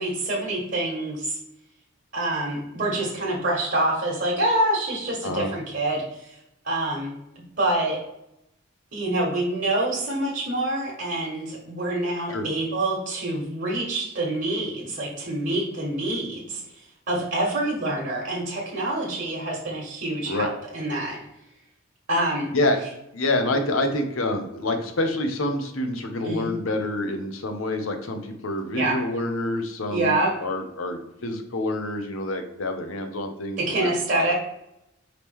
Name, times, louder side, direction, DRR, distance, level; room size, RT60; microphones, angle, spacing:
voice 1, 0.0-1.4 2.1-6.3 6.6-7.1 7.6-8.0 8.9-16.6 17.1-21.2 22.1-22.5 26.3-26.5 28.7-29.0 29.9-30.3 33.6-34.3, right 1 dB, 55° right, -4 dB, 1.4 m, -26 dB
voice 2, 23.1-34.3, left 1 dB, 90° left, 6 dB, 0.8 m, -27 dB
5.0 x 3.1 x 3.4 m, 0.83 s
head